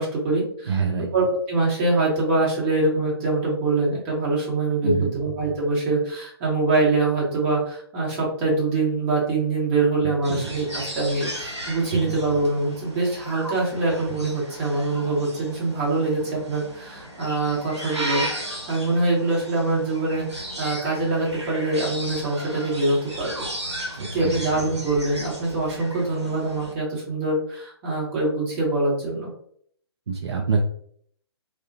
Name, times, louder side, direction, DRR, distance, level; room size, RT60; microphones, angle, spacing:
voice 1, 0.0-0.8 1.1-23.5 24.1-29.3, right 2 dB, 30° right, -4 dB, 1.1 m, -24 dB
voice 2, 0.7-1.1 4.8-5.2 10.3-10.5 24.0-24.4 30.1-30.6, right 5 dB, 70° right, 1 dB, 0.4 m, -25 dB
sound 1, 10.2-26.7, right 1 dB, 85° right, 0.9 m, -35 dB
2.3 x 2.2 x 2.6 m, 0.63 s
figure-of-eight pair, 125°, 14 cm